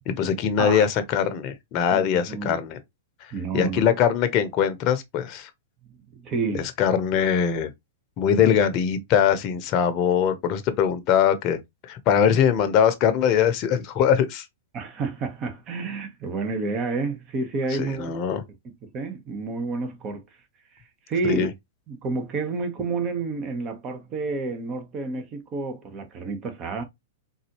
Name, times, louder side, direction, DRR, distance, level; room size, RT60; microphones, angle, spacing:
voice 1, 0.1-2.8 3.5-5.5 6.6-7.7 8.2-11.6 11.8-14.5 17.8-18.4 21.2-21.5, left 8 dB, 40° left, 0.8 m, -22 dB
voice 2, 1.9-2.6 3.3-3.8 5.8-6.7 8.4-8.5 14.7-18.4 18.8-20.3 21.1-21.5 21.9-26.8, right 4 dB, 30° right, 1.1 m, -30 dB
3.9 x 2.6 x 3.0 m
hypercardioid pair, 110°, 0 cm